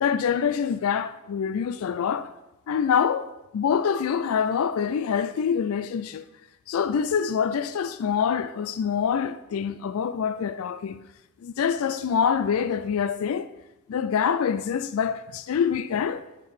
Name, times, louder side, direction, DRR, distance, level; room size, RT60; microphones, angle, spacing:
voice 1, 0.0-2.3 2.7-3.3 3.5-6.2 6.7-11.0 11.4-13.5 13.9-16.2, left 7 dB, 75° left, 0.3 m, -25 dB
11.0 x 3.7 x 4.8 m
head